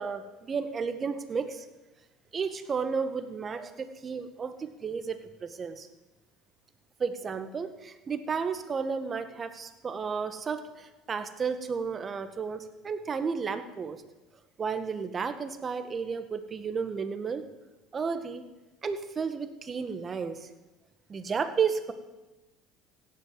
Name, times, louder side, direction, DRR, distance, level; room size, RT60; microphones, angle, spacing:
voice 1, 0.0-1.7 2.3-5.9 7.0-14.0 14.6-17.4 17.9-18.4 18.8-20.5 21.1-21.9, right 5 dB, 35° right, 10 dB, 1.8 m, -32 dB
16.0 x 11.0 x 7.6 m, 1.1 s
hypercardioid pair, 75°, 0 cm